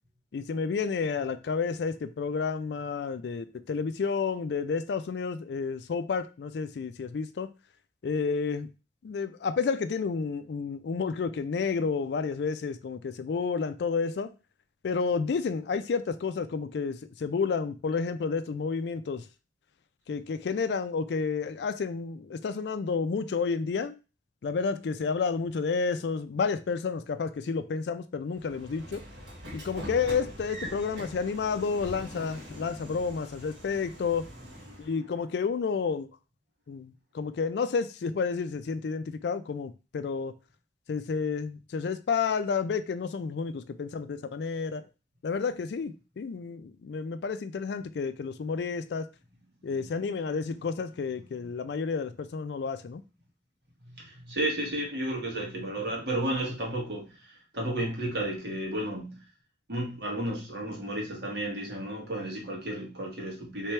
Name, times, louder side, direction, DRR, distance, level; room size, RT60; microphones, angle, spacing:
voice 1, 0.3-7.5 8.0-8.7 9.0-14.3 14.8-19.2 20.1-24.0 24.4-29.0 29.5-34.3 34.8-36.1 36.7-40.3 40.9-44.8 45.2-49.1 49.6-53.0, left 5 dB, 70° left, 0.4 m, -30 dB
Train / Sliding door, 28.4-34.9, equal, 90° right, 1.8 m, -43 dB
voice 2, 49.6-50.1 53.8-59.2 59.7-63.7, right 1 dB, 70° right, 1.7 m, -33 dB
3.3 x 3.3 x 4.3 m
head